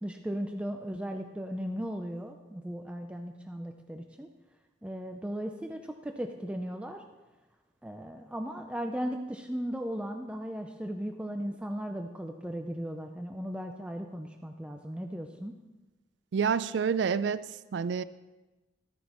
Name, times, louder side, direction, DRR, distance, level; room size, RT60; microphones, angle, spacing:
voice 1, 0.0-4.3 4.8-7.0 7.8-15.5, equal, 5° right, 4 dB, 0.4 m, -37 dB
voice 2, 16.3-18.0, right 6 dB, 75° right, 15 dB, 0.4 m, -28 dB
13.5 x 9.4 x 3.0 m, 1.1 s
head